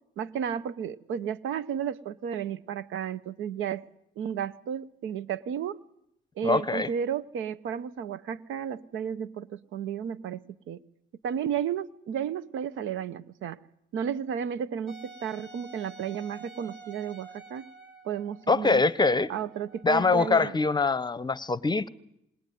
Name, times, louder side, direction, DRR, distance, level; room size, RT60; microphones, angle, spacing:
voice 1, 0.2-3.8 4.2-5.8 6.4-10.8 11.2-13.6 13.9-17.7 18.0-18.8 19.3-20.5, right 8 dB, 80° right, 0.8 m, -33 dB
voice 2, 6.4-6.9 18.5-19.3 19.8-21.9, left 3 dB, 20° left, 0.8 m, -24 dB
Wind instrument woodwind instrument, 14.9-20.5, right 3 dB, 65° right, 3.2 m, -49 dB
20.5 x 20.0 x 9.3 m
cardioid pair, 90°, 20 cm